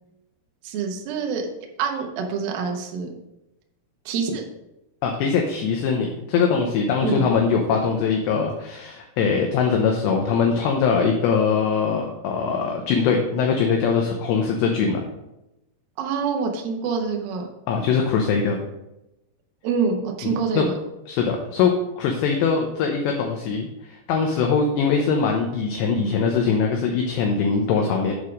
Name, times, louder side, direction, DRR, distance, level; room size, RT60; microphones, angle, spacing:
voice 1, 0.6-1.4 1.8-3.2 4.1-4.4 7.0-7.3 16.0-17.5 19.6-20.7, right 5 dB, 85° right, 2 dB, 2.1 m, -26 dB
voice 2, 5.0-15.0 17.7-18.6 20.2-20.6 21.1-21.7 22.0-28.1, left 5 dB, 80° left, 2 dB, 2.5 m, -22 dB
8.3 x 4.7 x 5.0 m, 0.93 s
omnidirectional pair, 5.8 m